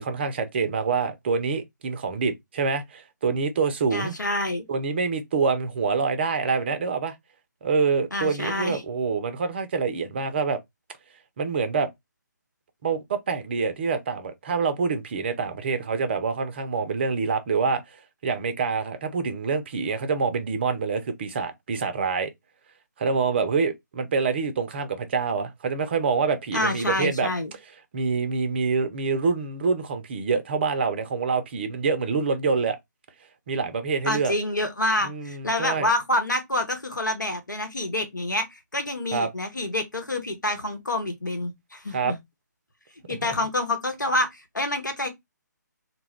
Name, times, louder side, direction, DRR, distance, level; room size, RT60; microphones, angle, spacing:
voice 1, 0.0-4.1 4.7-7.1 7.6-10.6 11.4-11.9 12.8-17.8 18.2-22.3 23.0-27.3 27.9-32.8 33.5-34.3 35.0-35.9 39.1-39.3 41.9-42.1, right 5 dB, 35° right, 0.5 m, -26 dB
voice 2, 3.9-4.6 8.1-8.8 26.5-27.5 34.1-42.2 43.1-45.1, left 1 dB, 80° left, 0.9 m, -27 dB
2.2 x 2.1 x 3.4 m
figure-of-eight pair, 140°, 10 cm